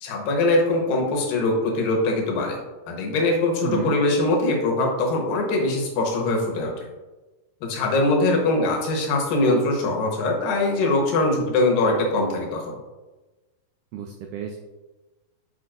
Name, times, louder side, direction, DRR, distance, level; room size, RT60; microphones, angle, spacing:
voice 1, 0.0-2.6 2.9-6.7 7.6-12.8, left 2 dB, 85° left, 0 dB, 2.8 m, -22 dB
voice 2, 3.6-4.0 13.9-14.6, right 8 dB, 80° right, 3 dB, 1.9 m, -31 dB
6.7 x 6.5 x 2.5 m, 1.2 s
omnidirectional pair, 4.0 m